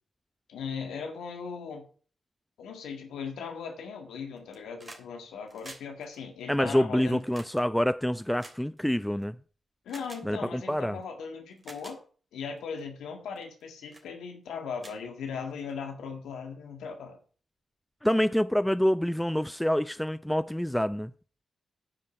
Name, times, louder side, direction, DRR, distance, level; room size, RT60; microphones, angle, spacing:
voice 1, 0.5-1.9 2.6-7.2 9.8-12.0 12.3-17.2, left 6 dB, 80° left, 1.8 m, -38 dB
sound 1, 4.4-5.1 5.4-9.2 9.9-10.2 11.0-11.1 11.5-12.0 12.6-12.8 13.4-13.6 13.9-14.1 14.5-14.6 14.8-15.7 16.9-17.0, right 2 dB, 30° right, 3.1 m, -49 dB
voice 2, 6.5-9.4 10.2-11.0 18.0-21.1, equal, 5° left, 0.4 m, -26 dB
9.7 x 5.3 x 6.9 m
supercardioid pair, 40°, 0 cm